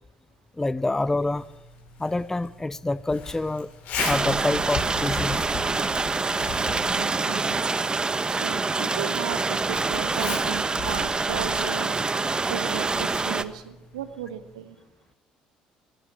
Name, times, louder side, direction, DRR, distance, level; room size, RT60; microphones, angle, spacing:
voice 1, 0.6-1.4 2.0-3.7 4.0-5.4, left 2 dB, 15° left, 19 dB, 0.6 m, -26 dB
Zipper (clothing), 1.0-14.5, left 4 dB, 60° left, 7.8 m, -38 dB
sound 1, 4.0-13.4, right 3 dB, 25° right, 1.2 m, -26 dB
voice 2, 6.9-7.6 8.3-11.9 12.5-14.7, right 10 dB, 75° right, 10 dB, 1.6 m, -36 dB
18.5 x 18.0 x 8.7 m, 1.0 s
figure-of-eight pair, 55°, 4 cm